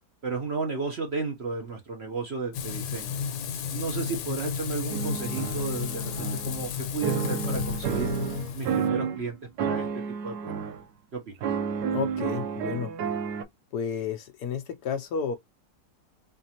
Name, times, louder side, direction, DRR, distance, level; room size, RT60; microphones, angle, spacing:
voice 1, 0.2-3.2 3.7-8.1 8.5-9.9 10.2-10.6 11.1-11.3, right 4 dB, 50° right, 0.8 m, -33 dB
Frying (food), 2.5-8.9, left 7 dB, 90° left, 1.4 m, -33 dB
sound 1, 4.9-6.7 7.0-9.2 9.6-10.8 11.4-13.4, right 7 dB, 70° right, 1.0 m, -30 dB
voice 2, 11.9-12.9 13.7-15.4, left 7 dB, 70° left, 1.0 m, -31 dB
3.6 x 3.3 x 2.8 m
omnidirectional pair, 1.9 m